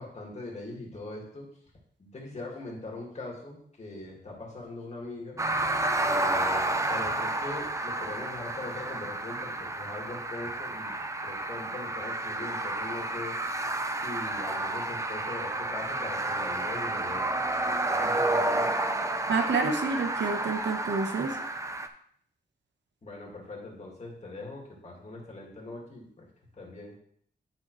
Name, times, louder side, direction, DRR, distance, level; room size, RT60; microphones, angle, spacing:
voice 1, 0.0-1.5 2.0-5.4 6.0-13.4 14.0-17.3 17.9-18.7 23.0-26.3 26.6-27.0, left 2 dB, 40° left, -2 dB, 2.2 m, -41 dB
sound 1, 5.4-21.9, right 2 dB, 15° right, 0.5 m, -30 dB
voice 2, 19.3-21.4, right 4 dB, 85° right, 5 dB, 1.1 m, -28 dB
10.5 x 5.4 x 3.2 m, 0.64 s
wide cardioid pair, 155°, 18 cm